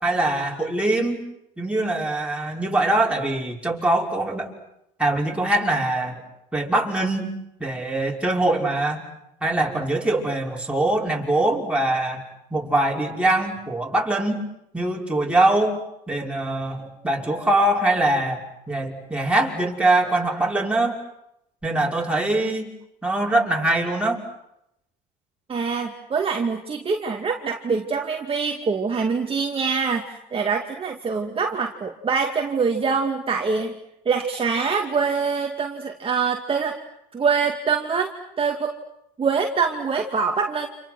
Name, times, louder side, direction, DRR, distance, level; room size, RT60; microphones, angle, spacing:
voice 1, 0.0-1.2 1.6-4.5 5.0-6.2 6.5-9.0 9.4-12.2 12.5-14.4 14.7-15.8 16.1-18.4 18.7-21.0 21.6-22.7 23.0-24.2, right 2 dB, 5° right, -2 dB, 5.9 m, -23 dB
voice 2, 25.5-33.7 34.1-36.8 37.1-38.1 38.4-38.7 39.2-40.7, right 5 dB, 30° right, 2 dB, 2.3 m, -24 dB
30.0 x 27.5 x 6.2 m, 0.82 s
supercardioid pair, 90°, 20 cm